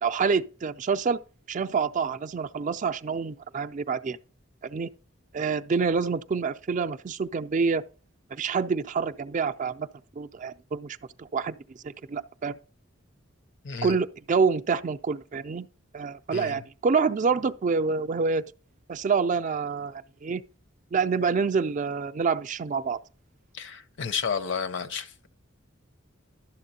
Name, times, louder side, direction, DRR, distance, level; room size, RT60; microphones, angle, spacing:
voice 1, 0.0-1.2 1.5-4.2 4.6-4.9 5.3-7.8 8.3-9.9 10.2-11.6 11.8-12.6 13.8-15.7 15.9-18.4 18.9-20.4 20.9-23.0, right 5 dB, 40° right, 0.4 m, -27 dB
voice 2, 13.6-14.0 16.3-16.6 23.5-25.3, left 6 dB, 65° left, 0.7 m, -32 dB
12.0 x 7.3 x 2.8 m
head